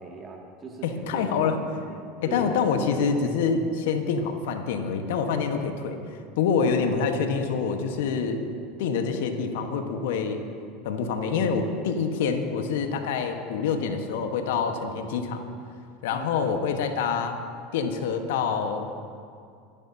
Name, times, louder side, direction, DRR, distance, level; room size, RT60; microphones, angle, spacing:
voice 1, 0.0-1.5 1.8-2.6 16.1-16.3, right 3 dB, 30° right, 0 dB, 2.3 m, -39 dB
voice 2, 0.8-1.6 2.2-6.0 6.4-8.5 8.8-10.4 10.8-15.4 16.0-17.4 17.7-18.9, left 5 dB, 70° left, 5 dB, 1.4 m, -26 dB
25.0 x 11.0 x 2.9 m, 2.3 s
hypercardioid pair, 85°, 0 cm